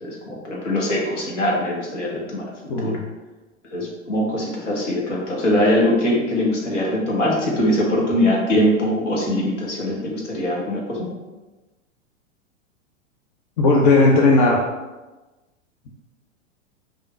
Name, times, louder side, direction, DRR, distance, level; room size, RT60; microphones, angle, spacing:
voice 1, 0.0-2.4 2.8-2.9 3.7-11.1, left 1 dB, 70° left, -2 dB, 1.2 m, -22 dB
voice 2, 2.7-3.0 13.6-14.6, left 2 dB, 40° left, -1 dB, 0.7 m, -16 dB
3.6 x 2.5 x 4.2 m, 1.2 s
figure-of-eight pair, 95°, 38 cm